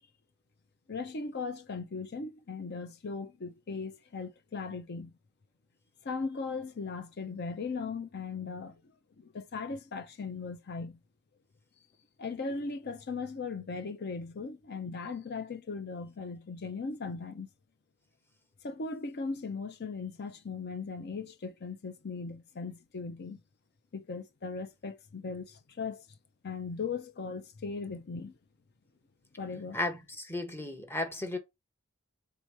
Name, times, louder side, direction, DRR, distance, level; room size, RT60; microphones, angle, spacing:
voice 1, 0.9-5.1 6.0-8.8 9.2-11.0 12.2-17.5 18.6-23.4 23.9-26.0 26.4-28.4 29.4-29.8, left 4 dB, 50° left, 0.6 m, -38 dB
voice 2, 29.7-31.4, left 2 dB, 10° left, 0.7 m, -34 dB
3.6 x 2.8 x 4.6 m
head